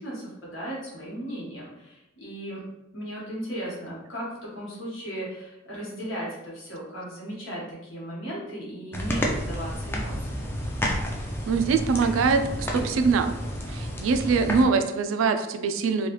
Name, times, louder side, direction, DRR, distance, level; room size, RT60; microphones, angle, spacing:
voice 1, 0.0-2.6 2.9-10.5, equal, 75° left, -6 dB, 1.3 m, -36 dB
sound 1, 8.9-14.6, equal, 10° left, 0.3 m, -30 dB
voice 2, 11.5-13.4 13.7-16.1, right 5 dB, 75° right, 8 dB, 0.3 m, -23 dB
3.1 x 2.3 x 3.0 m, 0.92 s
head